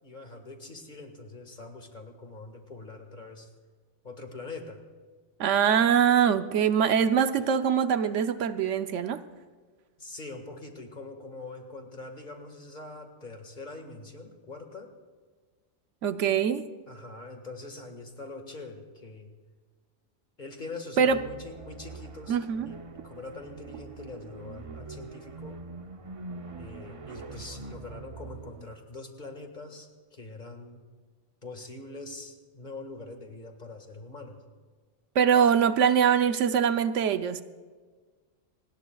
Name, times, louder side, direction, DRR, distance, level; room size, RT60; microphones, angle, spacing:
voice 1, 0.0-3.5 4.0-4.8 10.0-14.9 16.9-19.3 20.4-22.4 22.6-25.6 26.6-30.8 31.4-34.4, left 3 dB, 40° left, 5 dB, 1.8 m, -43 dB
voice 2, 5.4-9.2 16.0-16.7 21.0-21.2 22.3-22.7 35.1-37.4, right 7 dB, 80° right, 10 dB, 1.1 m, -23 dB
sound 1, 21.1-28.7, right 3 dB, 35° right, 0.7 m, -44 dB
27.5 x 19.5 x 2.3 m, 1.5 s
omnidirectional pair, 1.2 m